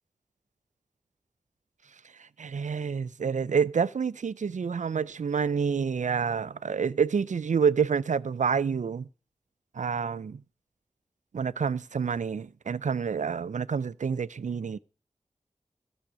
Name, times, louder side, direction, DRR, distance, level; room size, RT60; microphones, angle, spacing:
voice 1, 2.4-9.1 9.8-10.4 11.3-14.8, right 6 dB, 85° right, 0.5 m, -28 dB
13.5 x 7.3 x 6.2 m
cardioid pair, 40°, 12 cm